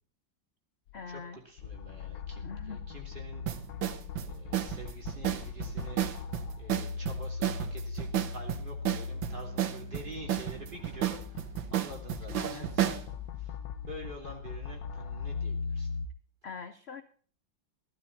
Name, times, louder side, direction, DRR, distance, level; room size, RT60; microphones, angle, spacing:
sound 1, 0.9-1.0 1.6-16.1, left 5 dB, 70° left, 1.6 m, -39 dB
voice 1, 0.9-1.4 2.4-2.9 12.4-13.0 16.4-17.0, left 5 dB, 55° left, 10 dB, 0.7 m, -43 dB
voice 2, 1.4-3.4 4.2-6.0 6.6-11.5 11.7-13.0 13.4-13.5 13.8-15.9, right 1 dB, 25° right, 1 dB, 3.2 m, -47 dB
sound 2, 3.5-13.1, right 12 dB, 80° right, 1.8 m, -32 dB
Bowed string instrument, 8.4-12.4, right 7 dB, 65° right, 3.2 m, -56 dB
16.0 x 12.5 x 4.1 m, 0.42 s
omnidirectional pair, 2.1 m